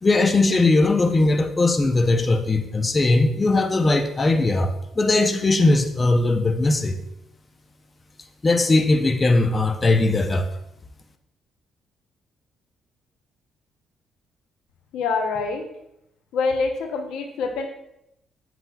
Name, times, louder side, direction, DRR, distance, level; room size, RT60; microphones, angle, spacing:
voice 1, 0.0-7.0 8.4-10.5, left 2 dB, 30° left, 6 dB, 0.6 m, -19 dB
voice 2, 14.9-15.7 16.3-17.7, left 4 dB, 90° left, 4 dB, 0.7 m, -25 dB
7.5 x 5.8 x 2.3 m, 0.81 s
cardioid pair, 90°, 0 cm